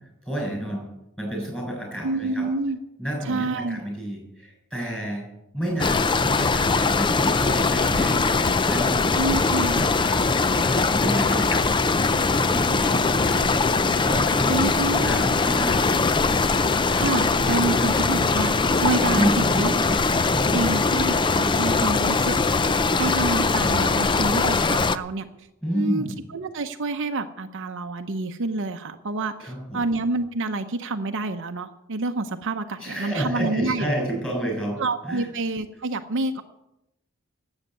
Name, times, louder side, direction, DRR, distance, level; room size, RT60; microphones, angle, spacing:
voice 1, 0.2-0.9 1.2-2.5 3.0-5.2 5.5-10.2 10.6-11.9 12.3-13.5 14.0-15.8 17.5-18.0 19.1-20.0 20.3-20.7 25.6-26.2 29.4-29.8 32.8-35.3, right 1 dB, 5° left, 0 dB, 6.7 m, -30 dB
voice 2, 2.0-2.8 3.2-3.8 9.1-9.8 14.5-15.4 16.9-20.0 20.5-22.4 22.9-25.5 25.7-26.0 26.3-33.9 34.8-36.4, right 2 dB, 60° right, 6 dB, 0.7 m, -28 dB
sound 1, 5.8-25.0, left 4 dB, 20° left, 0.5 m, -21 dB
13.0 x 8.1 x 9.6 m, 0.89 s
head